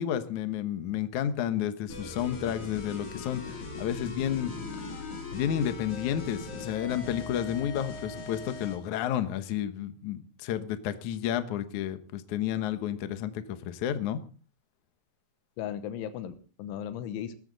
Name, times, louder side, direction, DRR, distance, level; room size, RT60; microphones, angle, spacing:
voice 1, 0.0-4.5 5.3-14.2, left 10 dB, 75° left, 11 dB, 1.8 m, -31 dB
sound 1, 1.9-8.8, left 4 dB, 45° left, 4.2 m, -40 dB
voice 2, 15.6-17.4, left 9 dB, 90° left, 11 dB, 3.5 m, -36 dB
20.0 x 14.0 x 4.0 m, 0.37 s
omnidirectional pair, 5.3 m